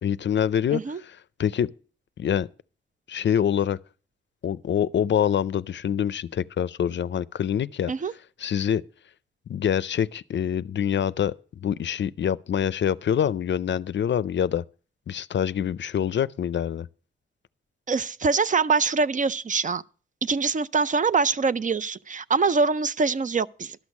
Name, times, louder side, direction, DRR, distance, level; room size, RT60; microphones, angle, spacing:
voice 1, 0.0-1.7 2.2-2.5 3.1-3.8 4.4-7.9 8.4-8.8 9.5-14.6 15.1-16.9, left 9 dB, 65° left, 0.4 m, -25 dB
voice 2, 17.9-19.8 20.2-23.8, right 4 dB, 40° right, 0.4 m, -24 dB
12.0 x 6.4 x 7.1 m
wide cardioid pair, 90°, 20 cm